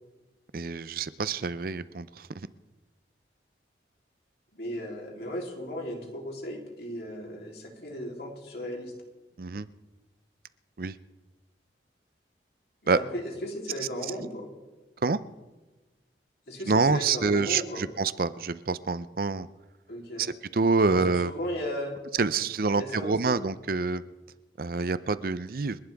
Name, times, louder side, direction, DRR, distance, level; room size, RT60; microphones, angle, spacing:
voice 1, 0.5-2.5 9.4-9.7 10.8-10.9 12.9-13.0 15.0-15.2 16.7-19.5 20.2-21.3 22.2-24.0 24.6-25.8, right 4 dB, 55° right, 15 dB, 0.5 m, -27 dB
voice 2, 4.5-8.9 12.8-14.5 16.5-17.9 19.9-20.3 20.9-21.0 21.2-22.0 22.7-23.4, equal, 65° left, 0 dB, 3.4 m, -36 dB
30.0 x 11.5 x 3.5 m, 1.2 s
head